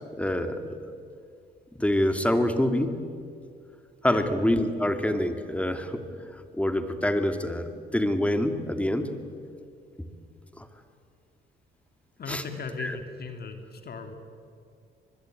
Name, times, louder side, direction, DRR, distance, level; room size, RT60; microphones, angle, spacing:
voice 1, 0.1-0.7 1.8-3.0 4.0-6.1 6.3-9.1 10.0-10.1 10.6-10.7 12.3-12.4 12.8-13.0, left 1 dB, 5° left, 7 dB, 2.5 m, -26 dB
voice 2, 12.2-14.1, left 4 dB, 50° left, 6 dB, 2.8 m, -37 dB
25.0 x 21.5 x 9.2 m, 2.3 s
cardioid pair, 90°, 20 cm